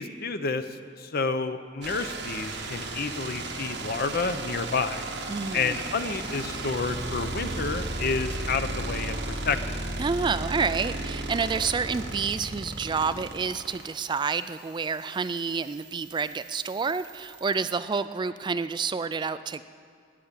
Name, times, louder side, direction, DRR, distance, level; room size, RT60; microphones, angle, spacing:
voice 1, 0.0-5.0 5.5-9.2 9.4-9.8, left 4 dB, 55° left, 10 dB, 0.7 m, -30 dB
sound 1, 1.8-18.0, right 2 dB, 70° right, 1.5 m, -35 dB
voice 2, 5.3-5.8 10.0-19.6, right 5 dB, 25° right, 13 dB, 0.3 m, -29 dB
13.5 x 9.6 x 8.8 m, 2.2 s
head